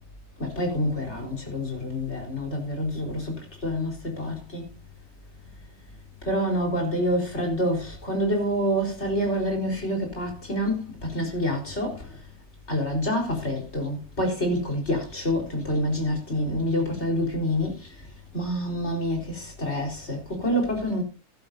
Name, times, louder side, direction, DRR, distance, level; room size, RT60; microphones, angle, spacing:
voice 1, 0.4-3.3 3.6-4.7 6.2-12.1 12.7-17.9 18.3-21.0, equal, 55° left, 4.5 m, -27 dB
14.5 x 12.0 x 2.7 m
omnidirectional pair, 1.4 m